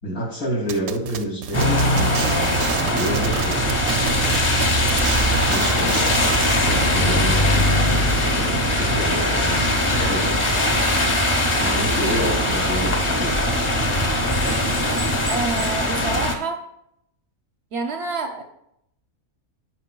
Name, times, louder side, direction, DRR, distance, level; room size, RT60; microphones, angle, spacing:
voice 1, 0.0-4.1 5.5-10.4 11.6-13.4, right 1 dB, 75° left, -4 dB, 3.0 m, -29 dB
sound 1, 0.7-6.6, right 9 dB, 80° right, 1.0 m, -31 dB
sound 2, 1.5-16.4, left 1 dB, 25° left, 0.7 m, -20 dB
voice 2, 15.3-16.6 17.7-18.4, right 3 dB, 60° right, 5 dB, 0.7 m, -28 dB
15.0 x 5.1 x 2.2 m, 0.78 s
omnidirectional pair, 1.5 m